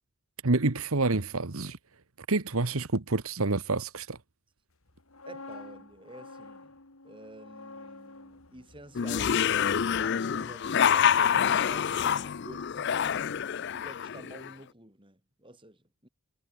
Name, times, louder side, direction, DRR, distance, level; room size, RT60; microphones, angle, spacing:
voice 1, 0.4-1.8 2.3-4.2, right 3 dB, 70° right, 1.3 m, -28 dB
sound 1, 4.9-10.8 11.1-11.3, left 3 dB, 70° left, 2.9 m, -49 dB
voice 2, 5.3-6.8 7.0-9.7 9.9-16.1, right 1 dB, 20° right, 5.8 m, -50 dB
sound 2, 9.0-14.5, left 8 dB, 50° left, 0.4 m, -27 dB
head